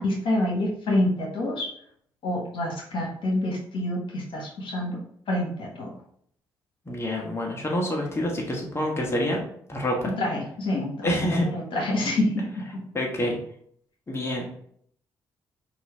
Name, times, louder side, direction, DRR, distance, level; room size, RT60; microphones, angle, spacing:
voice 1, 0.0-1.7 2.2-5.0 5.3-5.9 10.0-12.8, left 1 dB, 60° left, -2 dB, 1.4 m, -27 dB
voice 2, 6.9-9.4 9.7-10.1 11.0-11.5 12.9-13.4 14.1-14.5, equal, 25° left, -1 dB, 1.3 m, -27 dB
5.3 x 2.7 x 3.2 m, 0.65 s
hypercardioid pair, 50°, 10 cm